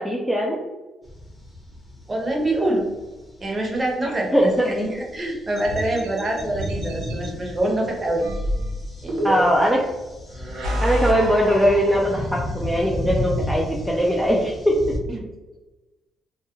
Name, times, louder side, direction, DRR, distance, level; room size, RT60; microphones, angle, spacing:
voice 1, 0.0-0.6 4.3-4.7 9.2-9.8 10.8-14.7, equal, ahead, -3 dB, 0.4 m, -20 dB
sound 1, 1.0-15.0, left 1 dB, 20° left, 0.8 m, -34 dB
voice 2, 2.1-2.9 3.4-8.2 9.0-9.4 15.1-15.3, right 1 dB, 25° right, 0 dB, 0.8 m, -25 dB
sound 2, 5.6-7.3 8.2-9.7 10.3-12.5, right 1 dB, 85° right, 0.7 m, -28 dB
2.3 x 2.1 x 3.0 m, 1.1 s
cardioid pair, 90°, 0 cm